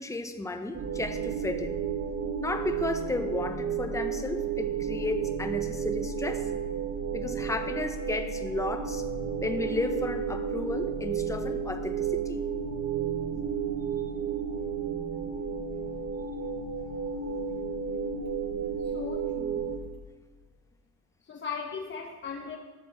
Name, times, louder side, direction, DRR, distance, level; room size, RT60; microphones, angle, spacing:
voice 1, 0.0-1.8 2.4-6.5 7.1-9.0 9.4-12.4, left 2 dB, 10° left, 7 dB, 0.8 m, -33 dB
sound 1, 0.7-19.8, right 6 dB, 50° right, 1.0 m, -32 dB
voice 2, 18.8-20.0 21.2-22.6, left 5 dB, 40° left, 2 dB, 1.0 m, -39 dB
12.5 x 4.2 x 7.2 m, 1.3 s
cardioid pair, 90°, 30 cm